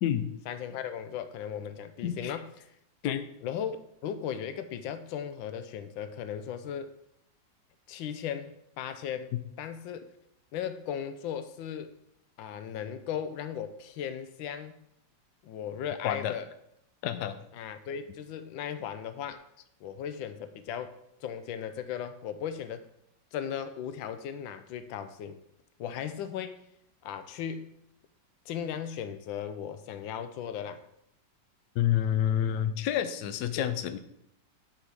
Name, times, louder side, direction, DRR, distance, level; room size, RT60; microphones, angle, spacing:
voice 1, 0.5-2.5 3.4-6.9 7.9-10.1 10.5-11.9 12.4-14.8 15.4-16.5 17.5-19.4 19.8-22.9 23.3-25.4 25.8-26.6 27.0-27.7 28.5-30.8 33.6-33.7, left 8 dB, 90° left, 11 dB, 1.4 m, -37 dB
voice 2, 2.0-2.4 3.0-3.2 16.0-16.3 17.0-17.4 31.8-34.0, left 10 dB, 70° left, 11 dB, 1.1 m, -28 dB
8.2 x 4.3 x 6.2 m, 0.77 s
omnidirectional pair, 2.0 m